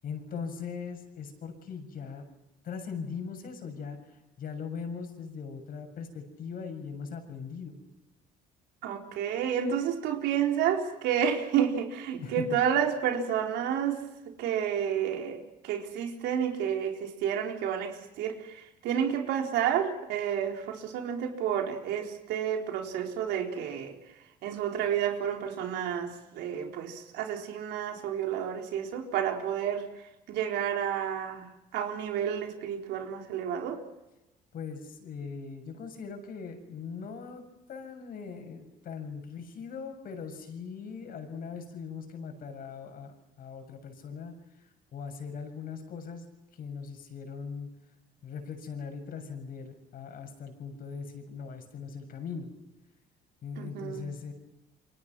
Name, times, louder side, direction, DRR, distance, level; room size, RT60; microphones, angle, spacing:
voice 1, 0.0-2.2 2.6-7.8 12.2-12.6 34.5-37.4 37.7-46.2 46.5-47.7 48.2-52.5 53.4-54.3, left 6 dB, 60° left, 5 dB, 7.0 m, -40 dB
voice 2, 8.8-14.0 14.4-24.0 24.4-29.9 30.3-31.5 31.7-33.8 53.6-54.1, right 8 dB, 85° right, 3 dB, 4.2 m, -30 dB
29.0 x 24.5 x 6.2 m, 0.97 s
cardioid pair, 110°, 17 cm